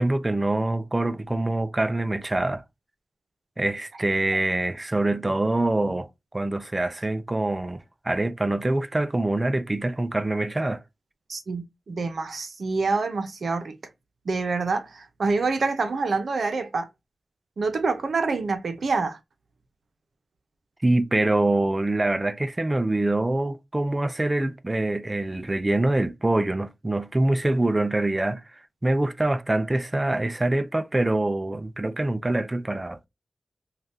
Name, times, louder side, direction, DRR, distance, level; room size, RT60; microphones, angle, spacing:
voice 1, 0.0-2.6 3.6-6.1 6.3-10.8 20.8-33.0, right 2 dB, 20° right, 0.3 m, -25 dB
voice 2, 11.3-13.8 14.3-16.9 17.6-19.2, right 4 dB, 65° right, 0.6 m, -26 dB
2.7 x 2.3 x 3.4 m
wide cardioid pair, 130°, 0 cm